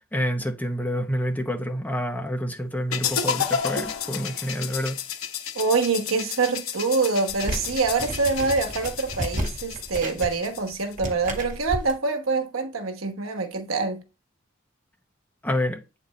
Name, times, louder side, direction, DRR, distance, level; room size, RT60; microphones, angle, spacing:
voice 1, 0.1-5.0 15.4-15.8, equal, 10° left, 0.9 m, -28 dB
sound 1, 2.9-10.9, left 7 dB, 90° left, 0.8 m, -31 dB
voice 2, 5.5-14.0, right 4 dB, 80° right, 1.2 m, -25 dB
sound 2, 7.3-11.9, equal, 40° right, 1.9 m, -33 dB
8.5 x 4.1 x 3.2 m
head